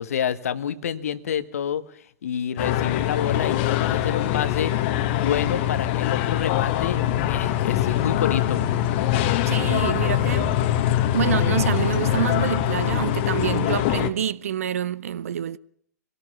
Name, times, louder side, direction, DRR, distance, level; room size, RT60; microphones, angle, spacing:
voice 1, 0.0-1.8 2.2-4.7 5.2-8.6, left 8 dB, 60° left, 1.4 m, -28 dB
sound 1, 2.6-14.1, left 11 dB, 40° left, 1.7 m, -23 dB
voice 2, 9.4-10.5 11.1-15.6, right 9 dB, 60° right, 0.8 m, -27 dB
23.0 x 18.5 x 7.3 m
figure-of-eight pair, 105°, 9 cm